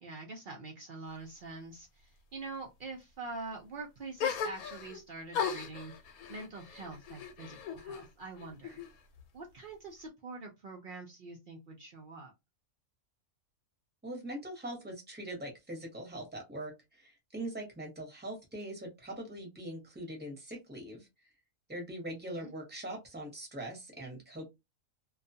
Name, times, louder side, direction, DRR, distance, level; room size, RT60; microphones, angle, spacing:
voice 1, 0.0-5.9 6.3-8.8 9.3-12.3 22.3-22.5, right 3 dB, 80° right, 0 dB, 0.4 m, -45 dB
sound 1, 4.2-5.0 5.3-8.1 8.4-9.2, left 7 dB, 85° left, 1.1 m, -37 dB
voice 2, 14.0-21.1 21.7-24.5, right 1 dB, 10° right, 1 dB, 0.7 m, -42 dB
2.3 x 2.3 x 2.6 m, 0.21 s
omnidirectional pair, 1.5 m